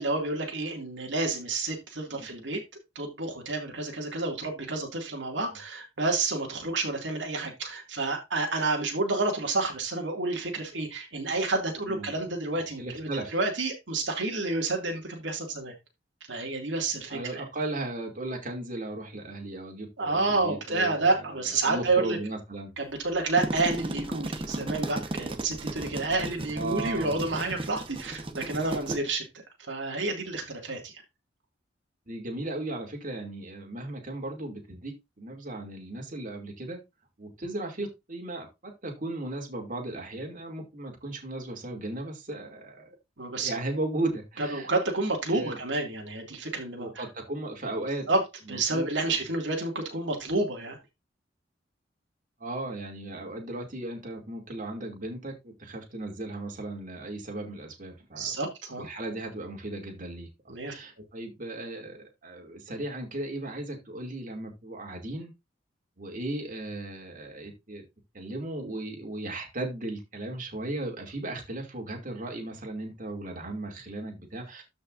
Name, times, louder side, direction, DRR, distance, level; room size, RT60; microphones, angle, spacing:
voice 1, 0.0-2.6 3.0-15.7 16.3-17.4 20.0-22.2 22.8-29.2 29.7-30.9 43.2-43.5 44.5-46.9 48.1-48.2 48.5-50.8 58.1-58.9 60.5-60.7, right 3 dB, 75° right, 1 dB, 2.3 m, -29 dB
voice 2, 11.9-12.2 12.8-13.4 17.1-22.7 26.5-27.3 32.1-36.8 37.2-43.0 43.3-44.7 45.3-45.6 46.8-48.1 48.5-49.2 52.4-58.4 58.8-65.3 66.0-67.8 68.1-74.6, right 2 dB, 45° right, 1 dB, 2.5 m, -36 dB
sound 1, 23.2-29.0, right 1 dB, 30° right, 1.1 m, -35 dB
13.5 x 5.3 x 2.5 m, 0.22 s
head